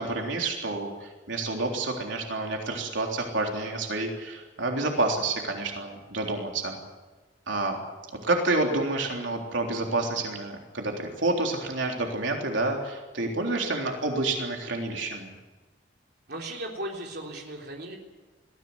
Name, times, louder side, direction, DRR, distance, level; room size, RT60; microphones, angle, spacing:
voice 1, 0.0-6.8 7.5-7.8 8.2-15.3, right 2 dB, 85° right, 1 dB, 3.6 m, -29 dB
voice 2, 16.3-18.0, right 1 dB, 60° right, 0 dB, 3.6 m, -36 dB
21.0 x 15.5 x 9.6 m, 1.3 s
head